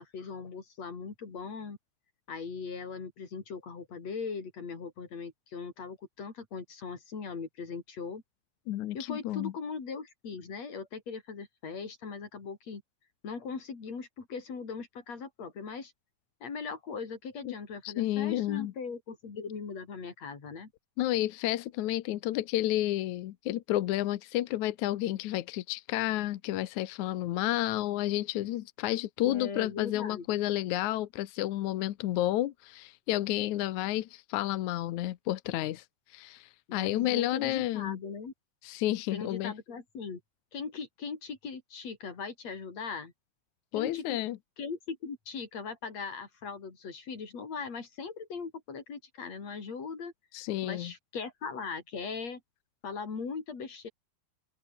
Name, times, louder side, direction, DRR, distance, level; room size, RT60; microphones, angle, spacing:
voice 1, 0.0-1.8 2.3-8.2 8.9-12.8 13.2-15.9 16.4-20.7 29.2-30.4 36.7-38.3 39.1-40.2 40.5-43.1 43.7-44.2 44.6-50.1 50.6-52.4 52.8-53.9, left 5 dB, 55° left, 5.4 m, -39 dB
voice 2, 8.7-9.5 17.5-17.6 17.8-18.7 21.0-35.8 36.1-38.0 38.6-39.5 43.7-44.4 50.3-50.9, left 14 dB, 75° left, 2.3 m, -31 dB
omnidirectional pair, 3.5 m